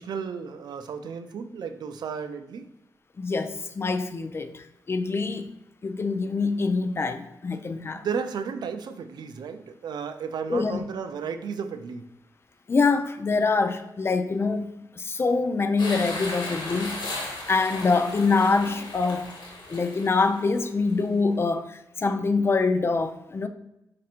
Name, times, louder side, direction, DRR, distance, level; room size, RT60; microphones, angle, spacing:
voice 1, 0.0-2.7 7.8-12.1, right 6 dB, 75° right, 0.4 m, -34 dB
voice 2, 3.2-5.5 5.8-8.1 10.5-10.8 12.7-17.0 17.5-19.3 19.7-23.5, left 4 dB, 35° left, 0.4 m, -25 dB
Binaural Waves splashes on rocks at Cap de l'Huerta Spain, 15.8-21.0, left 2 dB, 85° left, 1.1 m, -36 dB
4.2 x 2.5 x 4.3 m
cardioid pair, 95°, 7 cm